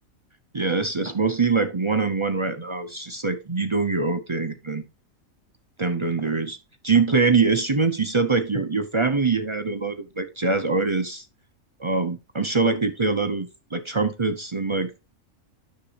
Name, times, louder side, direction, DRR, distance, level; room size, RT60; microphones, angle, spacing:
voice 1, 0.5-4.8 5.8-6.6 6.8-11.2 11.8-14.9, right 4 dB, 35° right, 0.5 m, -23 dB
9.9 x 6.7 x 2.9 m
omnidirectional pair, 1.5 m